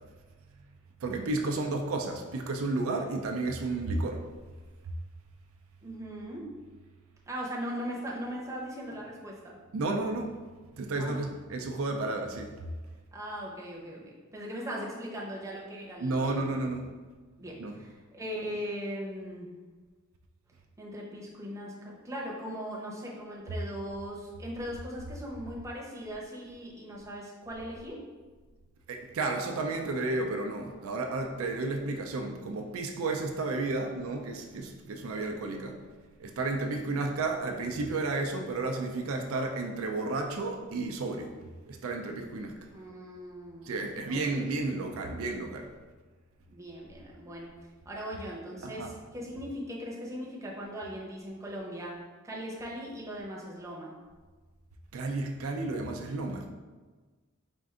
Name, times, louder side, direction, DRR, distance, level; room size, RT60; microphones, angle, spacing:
voice 1, 1.0-4.3 4.8-4.9 9.7-10.4 10.8-12.5 16.0-16.9 17.6-17.7 28.9-35.8 36.2-41.3 41.7-42.6 43.6-45.7 48.6-48.9 54.9-56.5, right 3 dB, 85° right, 3 dB, 0.4 m, -32 dB
voice 2, 5.8-6.5 7.3-9.5 10.9-11.2 13.1-16.7 17.4-19.5 20.8-28.0 42.7-44.5 46.5-47.5 47.9-52.0 52.2-53.9, equal, 15° right, -4 dB, 0.7 m, -39 dB
4.4 x 2.5 x 3.6 m, 1.4 s
head